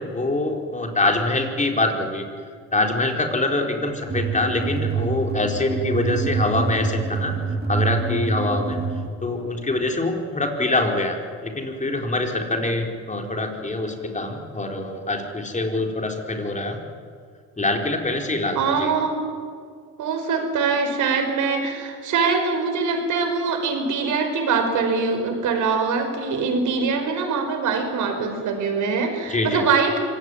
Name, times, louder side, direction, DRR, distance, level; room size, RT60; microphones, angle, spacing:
voice 1, 0.0-2.3 2.7-7.4 7.7-8.8 9.2-16.8 17.6-18.9 29.3-29.7, left 2 dB, 25° left, 2 dB, 4.3 m, -24 dB
sound 1, 4.1-9.1, right 4 dB, 30° right, 3.5 m, -26 dB
voice 2, 18.5-19.2 20.0-30.0, right 5 dB, 80° right, 5 dB, 5.2 m, -23 dB
25.0 x 17.0 x 9.7 m, 2.1 s
cardioid pair, 90°, 30 cm